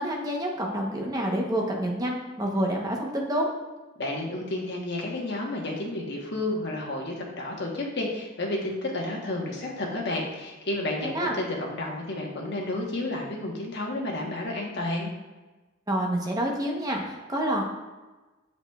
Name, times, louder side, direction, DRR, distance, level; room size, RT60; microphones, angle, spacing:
voice 1, 0.0-3.5 11.0-11.3 15.9-17.6, right 1 dB, 20° right, -1 dB, 0.9 m, -28 dB
voice 2, 4.0-15.1, left 2 dB, 55° left, -1 dB, 1.2 m, -31 dB
7.8 x 5.8 x 2.4 m, 1.2 s
head